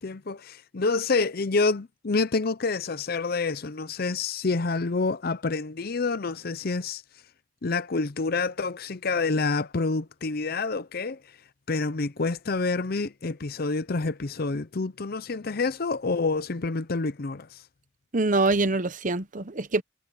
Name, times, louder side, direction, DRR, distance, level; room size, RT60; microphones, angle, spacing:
voice 1, 0.0-7.0 7.6-11.2 11.7-17.6, left 3 dB, 50° left, 0.6 m, -28 dB
voice 2, 18.1-19.8, right 3 dB, 40° right, 0.9 m, -24 dB
head